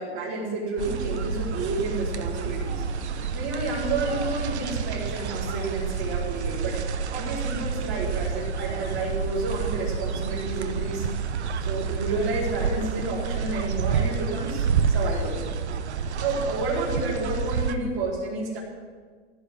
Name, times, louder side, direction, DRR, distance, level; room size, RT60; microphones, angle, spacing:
voice 1, 0.0-2.8 3.3-11.1 11.6-15.3 16.2-18.6, right 2 dB, 30° right, -6 dB, 4.6 m, -30 dB
sound 1, 0.8-17.8, right 6 dB, 85° right, 1.2 m, -29 dB
16.0 x 5.6 x 9.6 m, 1.5 s
supercardioid pair, 165°, 33 cm